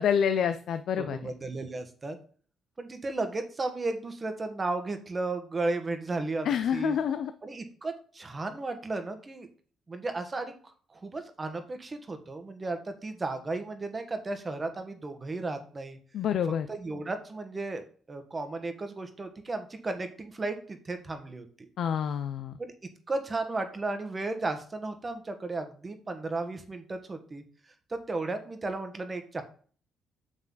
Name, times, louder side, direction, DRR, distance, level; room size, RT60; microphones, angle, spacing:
voice 1, 0.0-1.2 6.5-7.3 16.1-16.7 21.8-22.6, left 8 dB, 70° left, 10 dB, 0.4 m, -27 dB
voice 2, 1.0-2.2 2.8-7.0 7.4-9.5 9.9-10.5 10.9-16.0 16.7-21.7 22.6-22.7 23.1-27.4 27.9-29.4, right 3 dB, 30° right, 7 dB, 1.3 m, -34 dB
6.8 x 5.8 x 3.9 m, 0.43 s
cardioid pair, 90°, 0 cm